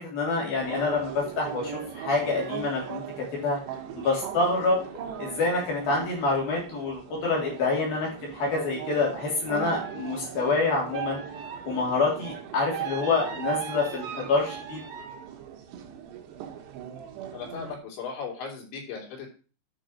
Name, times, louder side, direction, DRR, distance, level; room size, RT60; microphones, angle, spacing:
voice 1, 0.0-3.0 3.3-3.6 3.9-4.8 5.2-11.2 11.7-14.8, left 3 dB, 55° left, -2 dB, 4.6 m, -27 dB
sound 1, 0.6-17.8, right 9 dB, 75° right, 3.3 m, -38 dB
voice 2, 17.3-19.3, left 5 dB, 80° left, 0 dB, 5.4 m, -37 dB
10.0 x 5.6 x 6.4 m, 0.36 s
omnidirectional pair, 5.1 m